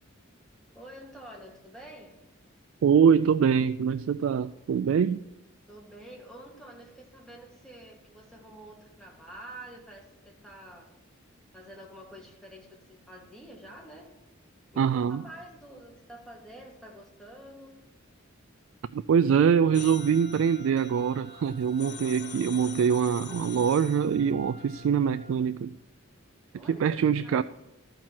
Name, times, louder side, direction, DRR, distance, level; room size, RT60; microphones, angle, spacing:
voice 1, 0.7-2.2 5.7-10.9 11.5-14.1 14.7-17.7 26.5-27.4, right 1 dB, 5° left, 1.8 m, -48 dB
voice 2, 2.8-5.2 14.8-15.2 18.9-25.8 26.7-27.4, right 7 dB, 75° right, 0.3 m, -24 dB
Trumpet, 19.3-25.4, right 1 dB, 25° right, 1.5 m, -51 dB
sound 1, 19.7-24.2, left 8 dB, 55° left, 0.7 m, -44 dB
13.5 x 4.5 x 7.4 m
head